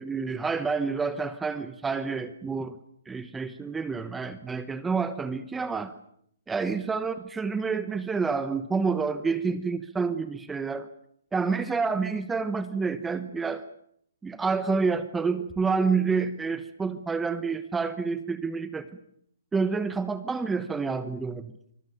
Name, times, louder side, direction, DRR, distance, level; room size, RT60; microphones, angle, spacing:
voice 1, 0.0-2.8 3.1-5.9 6.5-10.9 11.3-13.6 14.2-18.9 19.5-21.5, right 4 dB, 10° right, 12 dB, 1.1 m, -28 dB
26.0 x 20.5 x 7.0 m, 0.70 s
hypercardioid pair, 150°, 0 cm